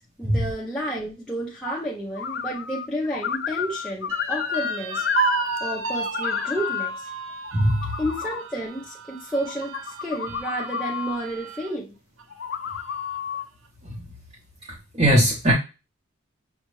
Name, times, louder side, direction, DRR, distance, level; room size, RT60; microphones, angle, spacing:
voice 1, 0.2-5.1 5.6-7.1 8.0-11.9, equal, 5° left, 0.7 m, -31 dB
sound 1, 2.2-2.9 3.1-5.8 6.0-6.9 7.4-8.4 9.4-11.2 12.3-13.5, left 8 dB, 50° left, 0.4 m, -30 dB
sound 2, 4.1-11.7 12.2-12.3 12.7-13.3, right 6 dB, 65° right, 0.5 m, -33 dB
voice 2, 15.0-15.5, equal, 25° right, 0.9 m, -18 dB
6.3 x 2.4 x 3.1 m
head